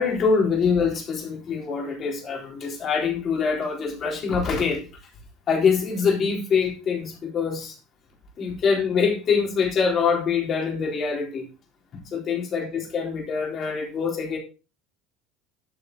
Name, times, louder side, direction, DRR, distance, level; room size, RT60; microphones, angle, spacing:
voice 1, 0.0-4.8 5.5-7.8 8.4-11.5 12.1-14.4, left 5 dB, 30° left, 0 dB, 3.9 m, -24 dB
12.5 x 6.7 x 4.0 m, 0.31 s
cardioid pair, 170°, 0 cm